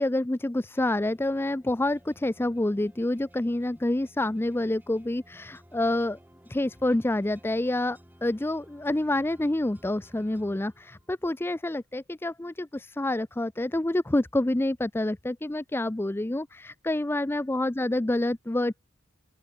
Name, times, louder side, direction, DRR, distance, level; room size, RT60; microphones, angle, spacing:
voice 1, 0.0-6.2 6.5-18.7, left 1 dB, 10° left, 0.4 m, -27 dB
sound 1, 0.8-11.4, equal, 10° right, 5.7 m, -56 dB
open air
head